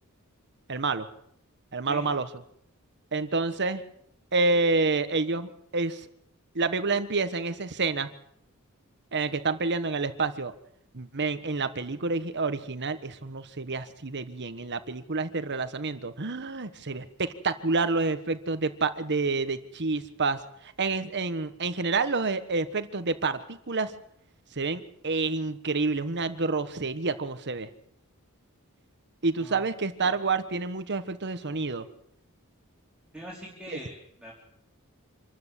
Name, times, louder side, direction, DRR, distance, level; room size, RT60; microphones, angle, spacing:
voice 1, 0.7-1.1 1.7-2.3 3.1-3.8 4.3-6.1 6.5-8.1 9.1-10.5 10.9-23.9 24.5-27.7 29.2-31.9 33.7-33.8, right 3 dB, 55° right, 11 dB, 1.4 m, -28 dB
voice 2, 33.1-34.3, right 1 dB, 5° right, -4 dB, 3.8 m, -42 dB
26.5 x 13.5 x 8.3 m, 0.72 s
head